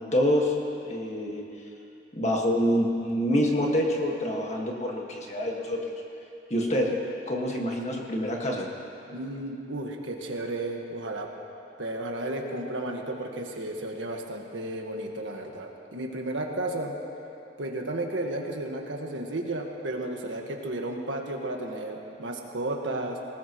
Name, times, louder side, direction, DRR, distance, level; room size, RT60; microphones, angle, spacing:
voice 1, 0.1-0.5 0.8-1.4 2.1-5.8 6.5-6.9 7.3-8.7, equal, 35° left, -1 dB, 1.7 m, -26 dB
voice 2, 9.1-11.3 11.8-16.9 17.6-23.2, right 1 dB, 90° right, 2 dB, 1.5 m, -33 dB
19.5 x 19.0 x 3.1 m, 2.7 s
head